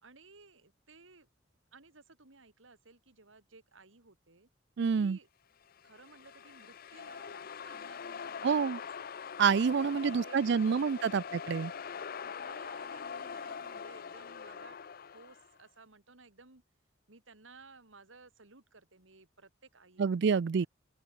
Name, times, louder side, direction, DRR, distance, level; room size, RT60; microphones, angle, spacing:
voice 1, 0.0-1.3 1.7-4.5 4.9-5.3 5.8-8.7 9.8-11.3 12.2-14.8 15.1-16.6 17.1-20.1 20.5-20.7, right 3 dB, 80° right, 2.9 m, -57 dB
voice 2, 4.8-5.2 8.4-8.8 9.4-11.7 20.0-20.7, right 6 dB, 60° right, 0.4 m, -28 dB
sound 1, 5.7-15.5, left 6 dB, 50° left, 0.5 m, -43 dB
open air
head